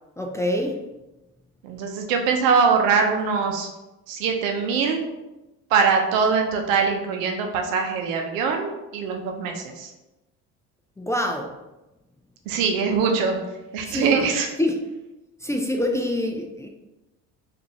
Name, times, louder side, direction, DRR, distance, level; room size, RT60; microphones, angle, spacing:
voice 1, 0.2-0.8 11.0-11.5 13.9-14.2 14.6-14.8 15.4-16.7, left 1 dB, 10° left, 1 dB, 0.3 m, -25 dB
voice 2, 1.6-3.7 4.1-5.0 5.7-9.9 12.5-13.4 13.7-14.5, right 5 dB, 85° right, 3 dB, 0.7 m, -22 dB
4.3 x 2.6 x 3.0 m, 1.0 s
supercardioid pair, 75°, 38 cm